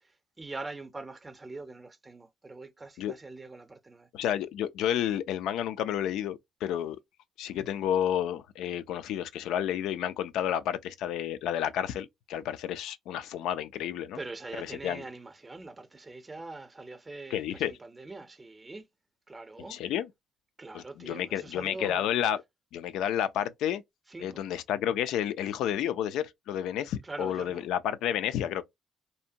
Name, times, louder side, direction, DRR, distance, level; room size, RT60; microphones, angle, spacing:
voice 1, 0.4-4.1 14.1-18.9 19.3-19.8 20.6-22.1 24.1-24.4 27.0-27.7, right 3 dB, 20° right, 0.5 m, -43 dB
voice 2, 4.1-7.0 7.4-14.2 14.6-15.0 17.3-17.7 19.6-20.1 20.7-22.4 22.7-23.8 24.2-28.6, left 10 dB, 90° left, 0.3 m, -31 dB
2.7 x 2.1 x 2.6 m
cardioid pair, 90°, 0 cm